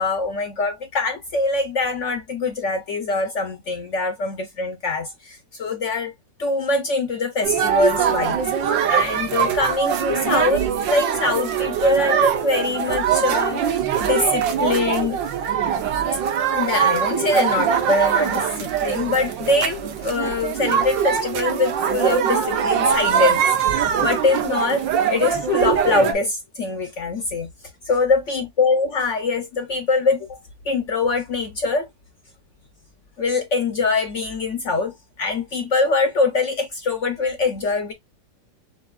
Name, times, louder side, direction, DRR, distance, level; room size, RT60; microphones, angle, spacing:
voice 1, 0.0-6.1 6.4-13.6 14.0-15.2 16.5-23.4 24.0-27.5 27.9-30.4 30.7-31.9 33.2-37.9, left 3 dB, 60° left, 0.8 m, -23 dB
sound 1, 7.4-26.1, right 8 dB, 85° right, 1.5 m, -22 dB
7.1 x 2.6 x 2.3 m
omnidirectional pair, 1.9 m